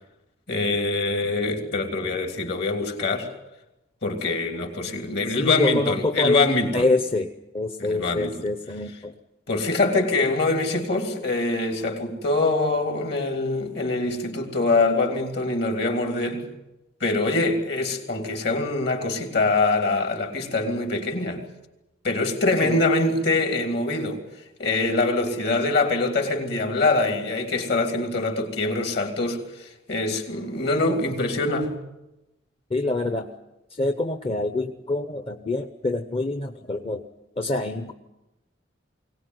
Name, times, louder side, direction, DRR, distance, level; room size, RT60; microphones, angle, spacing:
voice 1, 0.5-3.3 4.0-6.9 7.8-8.3 9.5-16.5 17.0-21.4 22.0-24.2 24.6-31.7, left 2 dB, 60° left, 3.2 m, -24 dB
voice 2, 5.4-6.5 6.7-9.1 22.6-22.8 32.7-33.3 33.7-37.0 37.4-37.9, left 2 dB, 30° left, 0.8 m, -26 dB
22.5 x 18.0 x 9.5 m
head